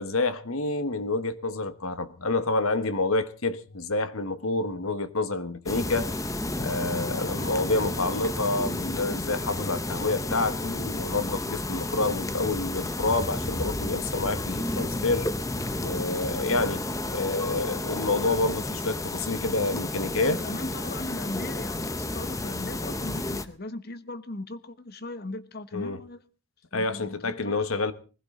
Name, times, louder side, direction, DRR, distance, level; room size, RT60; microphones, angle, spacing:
voice 1, 0.0-6.1 6.6-15.3 15.7-20.4 25.7-26.0 26.7-27.9, left 3 dB, 70° left, 1.3 m, -28 dB
sound 1, 5.7-23.4, left 2 dB, 15° left, 0.7 m, -31 dB
voice 2, 20.1-26.2 26.7-27.7, left 2 dB, 45° left, 1.1 m, -38 dB
21.5 x 16.0 x 3.7 m
head